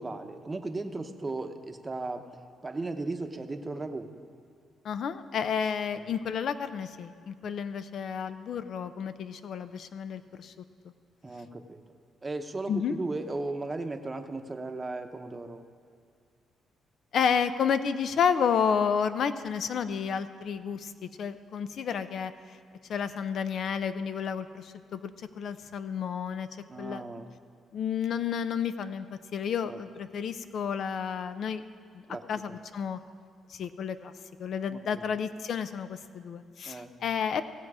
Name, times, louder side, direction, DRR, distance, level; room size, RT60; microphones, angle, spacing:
voice 1, 0.0-4.1 6.0-6.1 11.2-11.8 12.2-15.6 26.7-27.3 29.6-29.8 32.1-32.6 34.7-35.1 36.7-36.9, right 2 dB, 25° right, 7 dB, 0.8 m, -36 dB
voice 2, 4.8-10.5 12.7-13.0 17.1-22.3 22.9-26.5 26.8-27.0 27.7-31.6 31.9-32.0 32.3-33.0 33.5-34.1 34.4-37.4, left 7 dB, 65° left, 12 dB, 0.5 m, -31 dB
17.0 x 7.3 x 4.9 m, 2.1 s
cardioid pair, 90°, 0 cm